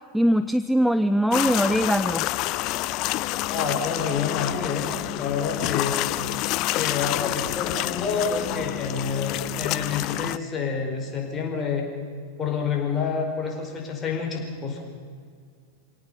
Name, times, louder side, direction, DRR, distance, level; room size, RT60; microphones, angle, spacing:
voice 1, 0.1-2.3, equal, ahead, 12 dB, 0.6 m, -21 dB
sound 1, 1.3-10.4, left 17 dB, 40° left, 0.6 m, -28 dB
voice 2, 3.5-6.0 6.7-11.8 12.4-14.8, left 5 dB, 25° left, 1 dB, 5.0 m, -28 dB
25.5 x 18.0 x 7.1 m, 2.1 s
figure-of-eight pair, 90°, 0 cm